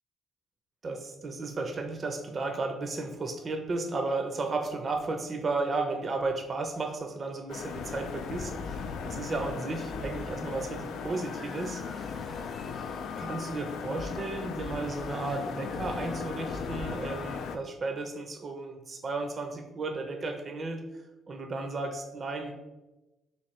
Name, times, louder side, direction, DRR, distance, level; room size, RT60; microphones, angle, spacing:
voice 1, 0.8-11.8 13.2-20.8 21.3-22.5, right 3 dB, 40° right, 4 dB, 0.5 m, -34 dB
sound 1, 7.5-17.6, left 5 dB, 80° left, 0.3 m, -37 dB
sound 2, 11.0-13.4 14.7-17.2, left 1 dB, 25° left, 0.6 m, -49 dB
3.1 x 3.0 x 4.3 m, 1.0 s
cardioid pair, 90°, 0 cm